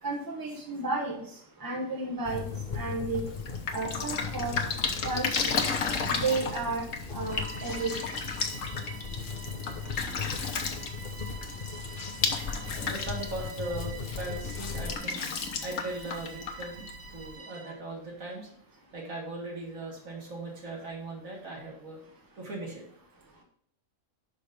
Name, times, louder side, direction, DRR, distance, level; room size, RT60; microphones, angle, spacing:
voice 1, 0.0-1.2 1.6-2.4 2.7-3.2 3.7-4.6 5.0-5.5 6.1-6.8 7.1-7.9, right 3 dB, 15° right, -1 dB, 1.2 m, -32 dB
sound 1, 2.2-15.0, left 5 dB, 40° left, 0.9 m, -38 dB
Drip, 3.3-17.3, left 5 dB, 75° left, 1.2 m, -34 dB
Bowed string instrument, 7.2-17.8, right 5 dB, 50° right, 0.4 m, -47 dB
voice 2, 12.7-15.2 15.6-16.9 17.1-18.5 18.9-22.0 22.4-22.8, right 2 dB, 85° right, -2 dB, 2.3 m, -39 dB
5.7 x 5.2 x 5.1 m, 0.63 s
omnidirectional pair, 1.4 m